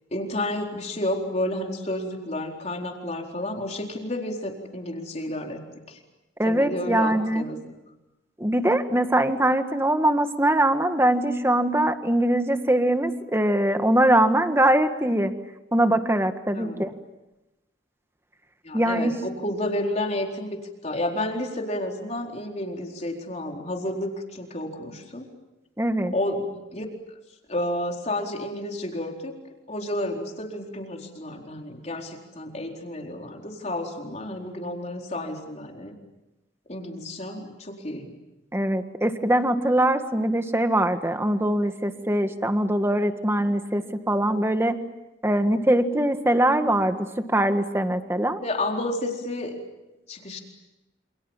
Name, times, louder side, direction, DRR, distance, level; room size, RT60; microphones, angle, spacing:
voice 1, 0.1-6.0 6.4-7.8 16.5-16.8 18.6-25.3 26.1-26.9 27.5-29.3 29.7-35.9 36.7-38.1 48.4-49.6 50.1-50.4, left 1 dB, 35° left, 2 dB, 4.3 m, -31 dB
voice 2, 6.4-7.4 8.4-15.3 15.7-16.9 18.7-19.1 25.8-26.1 38.5-44.8 45.2-47.0 47.3-48.4, right 1 dB, 15° right, 7 dB, 1.7 m, -22 dB
28.5 x 28.0 x 7.4 m, 0.98 s
head